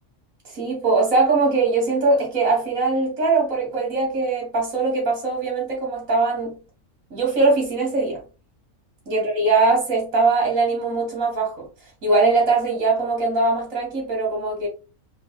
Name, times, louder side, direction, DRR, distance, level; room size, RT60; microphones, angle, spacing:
voice 1, 0.5-6.6 7.1-8.2 9.1-11.7 12.0-14.7, right 3 dB, 65° right, 2.1 m, -21 dB
4.4 x 2.6 x 2.4 m
omnidirectional pair, 1.5 m